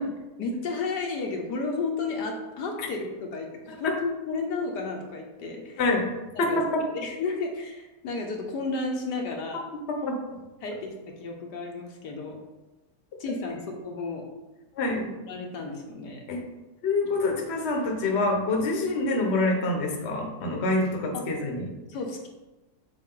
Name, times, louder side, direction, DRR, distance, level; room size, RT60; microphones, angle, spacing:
voice 1, 0.4-5.8 6.4-6.6 6.9-9.6 10.6-10.9 11.2-12.4 13.2-14.2 14.9-16.2 21.1-21.2 21.9-22.3, left 3 dB, 70° left, 1 dB, 1.4 m, -32 dB
voice 2, 6.4-6.8 9.9-10.4 14.7-15.1 16.3-16.4 16.8-21.6, left 2 dB, 45° left, 1 dB, 1.1 m, -26 dB
7.3 x 4.7 x 3.8 m, 1.1 s
omnidirectional pair, 1.9 m